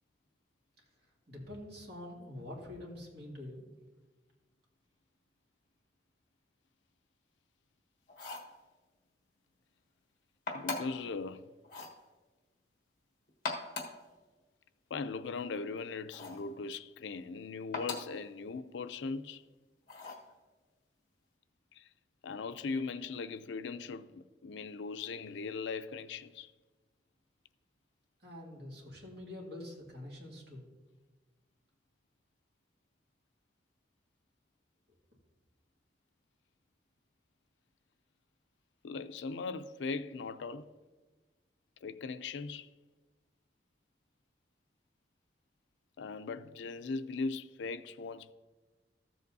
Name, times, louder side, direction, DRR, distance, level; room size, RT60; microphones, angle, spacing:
voice 1, 1.3-3.7 28.2-30.7, left 1 dB, 60° right, 2.3 m, -46 dB
sound 1, 8.1-8.5 10.5-11.0 11.6-12.0 13.3-14.0 16.1-16.5 17.7-18.2 19.9-20.3, left 3 dB, 50° left, 1.3 m, -40 dB
voice 2, 10.5-11.5 14.9-19.4 21.7-21.9 22.2-26.5 38.8-40.7 41.8-42.7 46.0-48.3, left 4 dB, 90° left, 0.4 m, -39 dB
14.0 x 7.7 x 2.7 m
head